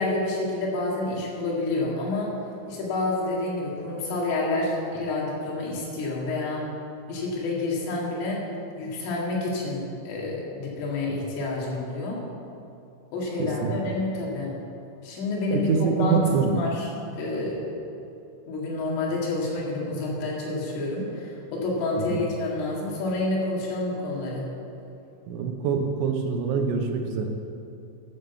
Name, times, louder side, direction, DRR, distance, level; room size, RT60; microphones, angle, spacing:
voice 1, 0.0-2.3 2.7-6.6 7.1-8.4 8.8-12.2 13.1-14.5 15.0-17.6 18.5-24.5, left 2 dB, 85° left, -4 dB, 4.8 m, -28 dB
voice 2, 13.4-13.7 15.5-16.5 22.1-22.2 25.3-27.3, right 6 dB, 80° right, 4 dB, 3.2 m, -25 dB
12.5 x 7.2 x 6.9 m, 2.8 s
omnidirectional pair, 5.6 m